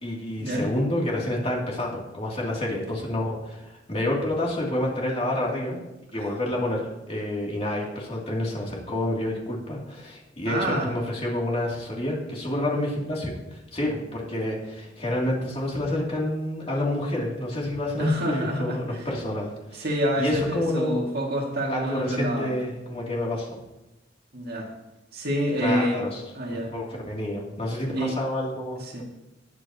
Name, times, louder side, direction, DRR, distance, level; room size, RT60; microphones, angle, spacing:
voice 1, 0.0-5.8 6.1-19.9 20.2-21.0 21.7-23.6 25.6-26.2 26.5-29.0, left 1 dB, 35° left, -3 dB, 2.9 m, -29 dB
voice 2, 10.5-10.9 18.0-19.1 19.8-22.6 24.3-24.7 25.1-26.0 26.3-26.7 27.9-28.2 28.8-29.0, equal, 55° right, -1 dB, 2.3 m, -27 dB
20.0 x 8.5 x 3.0 m, 0.99 s
head